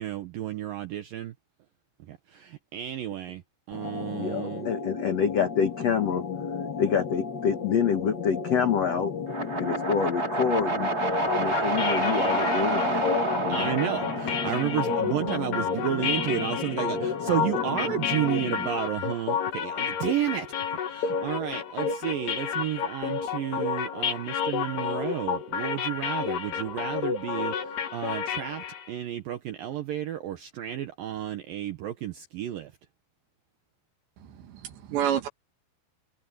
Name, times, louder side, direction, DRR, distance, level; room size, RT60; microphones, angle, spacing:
voice 1, 0.0-1.3 2.1-3.4 3.7-4.7 13.5-20.5 20.9-32.7, right 11 dB, 90° right, 1.9 m, -32 dB
sound 1, 3.7-18.8, left 5 dB, 40° left, 1.7 m, -35 dB
voice 2, 4.1-6.2 6.8-9.1 9.6-10.9 11.4-13.1 13.4-13.8, left 7 dB, 85° left, 1.4 m, -27 dB
sound 2, 9.3-15.4, right 3 dB, 20° right, 3.2 m, -29 dB
sound 3, 11.0-28.9, left 7 dB, 60° left, 3.6 m, -30 dB
voice 3, 34.2-35.3, right 10 dB, 65° right, 4.0 m, -29 dB
omnidirectional pair, 5.7 m